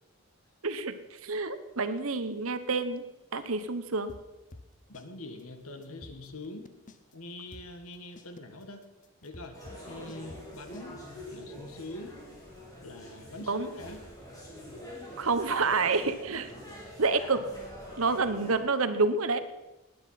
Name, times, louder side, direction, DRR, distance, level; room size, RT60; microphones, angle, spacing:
voice 1, 0.6-3.0 3.3-4.1 13.5-13.7 15.2-16.5 17.0-17.5 18.0-19.4, right 3 dB, 75° right, 11 dB, 1.1 m, -28 dB
sound 1, 4.1-5.1 5.4-5.5 5.8-7.1 7.5-10.9, left 2 dB, 35° left, 0.8 m, -50 dB
voice 2, 4.9-6.7 7.1-8.8 9.2-9.6 9.9-11.0 11.3-12.2 12.8-14.1, left 2 dB, 80° left, 7 dB, 1.9 m, -43 dB
sound 2, 9.5-18.6, equal, 15° left, 3.8 m, -45 dB
19.5 x 9.8 x 5.8 m, 1.0 s
head